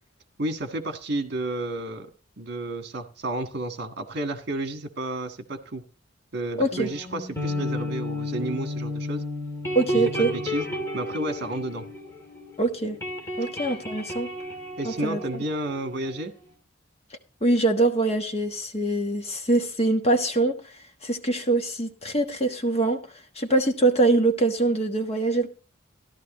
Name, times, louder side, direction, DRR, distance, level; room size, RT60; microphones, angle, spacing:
voice 1, 0.4-2.1 2.4-5.8 6.3-9.2 9.9-10.7 10.9-11.9 14.8-16.3, right 2 dB, 55° right, 1.6 m, -31 dB
voice 2, 6.6-6.9 9.7-10.3 12.6-13.0 13.4-14.3 14.8-15.4 17.4-20.5 21.0-23.0 23.3-25.5, right 2 dB, 30° left, 1.3 m, -23 dB
sound 1, 6.7-12.5 12.8-16.2, left 1 dB, 15° left, 2.7 m, -32 dB
14.0 x 12.0 x 3.0 m
head